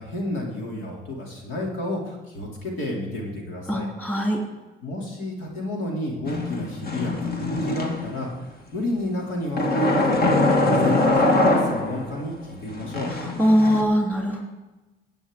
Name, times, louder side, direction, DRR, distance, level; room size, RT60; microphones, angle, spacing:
voice 1, 0.0-3.9 4.8-8.3 8.7-10.3 10.6-13.1, left 1 dB, 85° left, -1 dB, 2.9 m, -31 dB
voice 2, 3.7-4.4 13.4-14.4, equal, 5° left, -1 dB, 3.2 m, -21 dB
sound 1, 6.3-8.3 9.6-12.2 12.7-13.8, left 2 dB, 50° left, 1.8 m, -22 dB
15.0 x 8.9 x 3.7 m, 1.1 s
cardioid pair, 90°, 20 cm